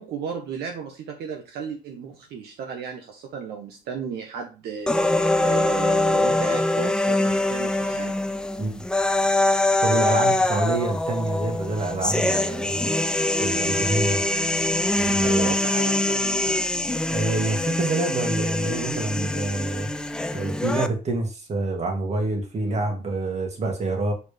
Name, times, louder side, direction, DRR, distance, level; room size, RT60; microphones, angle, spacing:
voice 1, 0.0-8.1 15.0-16.7 22.7-22.8, right 6 dB, 75° right, 2 dB, 1.2 m, -35 dB
sound 1, 4.9-20.9, left 1 dB, 5° left, 0.4 m, -23 dB
voice 2, 9.8-13.0 13.4-14.2 14.9-15.6 17.1-19.9 20.3-24.1, right 2 dB, 40° right, 3 dB, 2.0 m, -27 dB
7.0 x 4.1 x 3.4 m, 0.33 s
cardioid pair, 110°, 17 cm